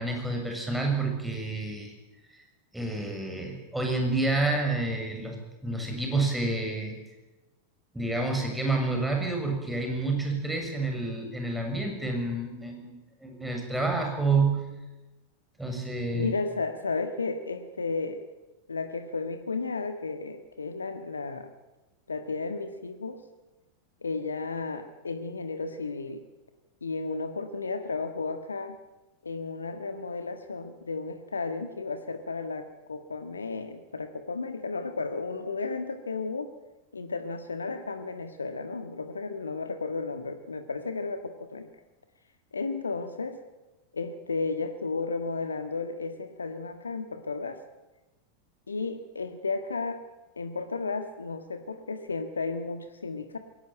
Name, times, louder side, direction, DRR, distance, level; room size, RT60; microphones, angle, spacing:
voice 1, 0.0-1.9 2.7-5.4 5.6-6.9 7.9-14.6 15.6-16.3, right 3 dB, 5° right, 2 dB, 7.0 m, -29 dB
voice 2, 16.1-18.2 18.7-21.5 22.1-23.2 24.0-26.2 26.8-28.8 29.2-36.5 36.9-41.7 42.5-43.4 43.9-47.6 48.7-50.0 50.4-53.4, left 4 dB, 75° left, 8 dB, 1.5 m, -33 dB
22.0 x 18.0 x 9.1 m, 1.1 s
figure-of-eight pair, 90°, 0 cm